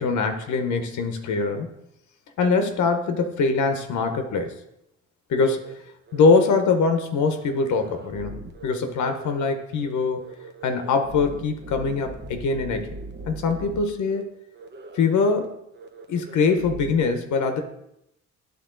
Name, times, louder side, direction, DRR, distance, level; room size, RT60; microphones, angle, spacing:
voice 1, 0.0-1.7 2.4-4.5 5.3-5.6 6.1-10.2 10.6-12.9 13.3-14.2 14.9-15.6 16.1-17.6, left 4 dB, 75° left, 6 dB, 1.0 m, -23 dB
sound 1, 5.6-5.7 6.1-6.6 6.8-7.0 7.3-8.7 9.0-9.5 9.8-9.9 10.2-13.8 14.1-14.2 14.5-15.0 15.3-15.4 15.7-17.0, right 2 dB, 35° right, 0.8 m, -40 dB
9.5 x 3.6 x 3.8 m, 0.80 s
cardioid pair, 90°, 30 cm